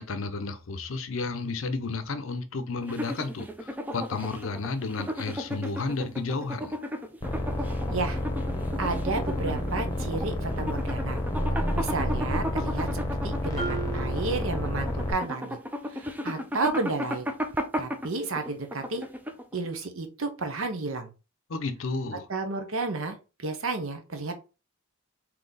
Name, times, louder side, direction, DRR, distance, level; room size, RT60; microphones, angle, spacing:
voice 1, 0.0-6.7 21.5-22.3, left 3 dB, 65° left, 0.6 m, -32 dB
sound 1, 2.8-19.7, equal, 10° right, 0.4 m, -35 dB
sound 2, 7.2-15.1, left 1 dB, 15° left, 0.9 m, -30 dB
voice 2, 8.8-11.2 11.7-12.9 13.2-15.6 15.9-17.3 17.8-19.0 19.5-21.1 22.3-24.3, right 3 dB, 65° right, 0.8 m, -32 dB
Marimba xylophone, 13.6-15.3, right 5 dB, 25° right, 1.5 m, -37 dB
3.9 x 2.9 x 3.8 m
head